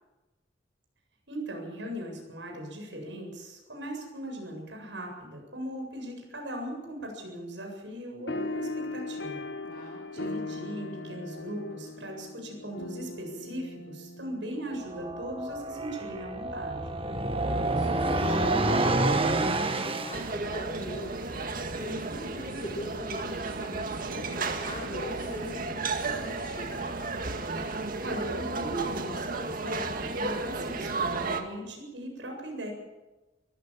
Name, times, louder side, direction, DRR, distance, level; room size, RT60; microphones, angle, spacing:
voice 1, 1.3-9.5 10.1-16.9 28.0-32.7, right 1 dB, 75° right, 2 dB, 7.8 m, -39 dB
sound 1, 8.3-15.2, left 2 dB, 75° left, 1.3 m, -38 dB
voice 2, 9.6-10.3 17.3-21.2 21.7-26.9, equal, 30° left, -2 dB, 3.7 m, -42 dB
sound 2, 14.8-20.3, right 2 dB, 30° right, 1.5 m, -28 dB
sound 3, 20.1-31.4, right 3 dB, 50° right, 2.0 m, -33 dB
24.0 x 15.0 x 7.4 m, 1.1 s
head